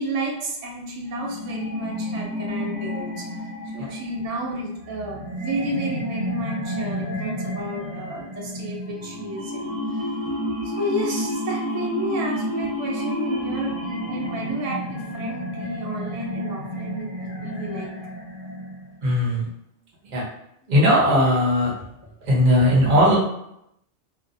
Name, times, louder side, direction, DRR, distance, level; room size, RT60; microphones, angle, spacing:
voice 1, 0.0-3.5 3.7-17.9, right 1 dB, 90° right, -1 dB, 0.9 m, -32 dB
sound 1, 1.1-19.0, equal, 25° left, 0.4 m, -30 dB
voice 2, 19.0-19.5 20.1-20.2 20.7-21.7 22.2-23.2, equal, 40° right, -5 dB, 0.8 m, -18 dB
2.5 x 2.1 x 2.6 m, 0.78 s
omnidirectional pair, 1.2 m